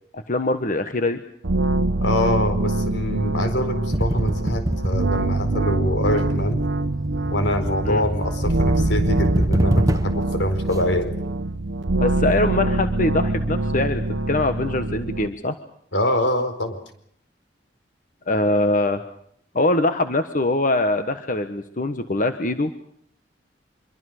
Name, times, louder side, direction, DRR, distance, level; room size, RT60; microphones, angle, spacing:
voice 1, 0.1-1.2 7.8-8.0 12.0-15.6 18.3-19.0 19.5-22.7, left 2 dB, 45° left, 9 dB, 1.4 m, -23 dB
sound 1, 1.4-15.3, right 2 dB, 80° right, 1.0 m, -24 dB
voice 2, 2.0-6.6 7.3-11.2 15.9-16.8, left 1 dB, 80° left, 8 dB, 4.7 m, -24 dB
sound 2, 3.9-10.3, equal, 20° right, 1.2 m, -26 dB
25.5 x 24.0 x 6.6 m, 0.67 s
head